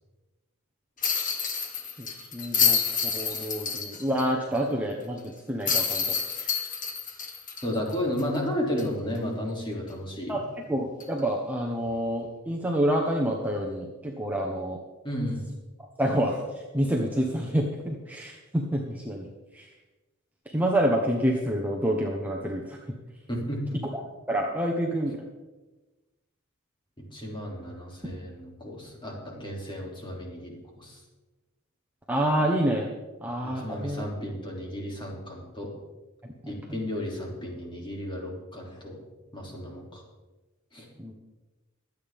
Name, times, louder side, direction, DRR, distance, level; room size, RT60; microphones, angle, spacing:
sound 1, 1.0-4.2 4.6-4.7 5.7-8.4 8.8-8.9 11.0-11.2, left 6 dB, 40° left, 1.8 m, -28 dB
voice 1, 2.0-6.7 10.3-10.4 10.7-14.8 15.8-19.3 19.5-19.7 20.5-22.8 24.3-25.2 32.1-32.9 33.2-34.0 36.2-36.6 41.0-41.1, right 1 dB, 10° right, -1 dB, 1.2 m, -28 dB
voice 2, 7.6-10.4 15.0-15.4 23.3-23.8 27.0-31.0 33.5-35.7 36.5-39.0 39.3-40.0 40.7-40.9, equal, 25° left, -2 dB, 3.2 m, -33 dB
23.5 x 8.7 x 3.7 m, 1.2 s
head